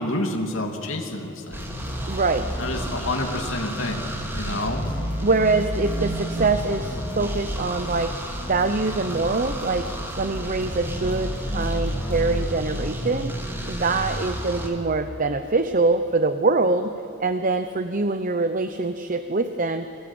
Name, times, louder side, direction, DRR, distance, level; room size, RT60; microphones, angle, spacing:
voice 1, 0.0-1.6 2.6-4.9, left 1 dB, 70° left, 2 dB, 2.8 m, -28 dB
sound 1, 1.5-12.6, equal, 25° left, 5.2 m, -36 dB
sound 2, 1.5-14.7, equal, 10° right, 3.3 m, -31 dB
voice 2, 2.1-2.6 5.2-8.2 8.5-9.9 10.2-13.4 13.6-16.9 17.2-19.9, right 3 dB, 40° right, 9 dB, 0.9 m, -24 dB
28.5 x 23.0 x 8.9 m, 2.8 s
head